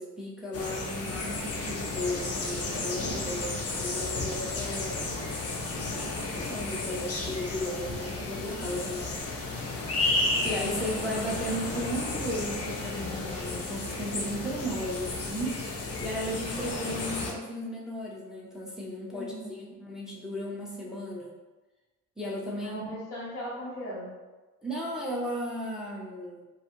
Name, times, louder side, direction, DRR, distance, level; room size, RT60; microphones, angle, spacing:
voice 1, 0.0-5.0 6.3-9.1 10.4-15.6 16.0-21.3 22.2-22.9 24.6-26.4, equal, ahead, -4 dB, 0.6 m, -35 dB
sound 1, 0.5-17.3, left 2 dB, 35° left, 0.6 m, -33 dB
voice 2, 19.1-19.8 22.6-24.1, equal, 85° left, -6 dB, 1.0 m, -38 dB
2.4 x 2.3 x 2.9 m, 1.2 s
hypercardioid pair, 50°, 44 cm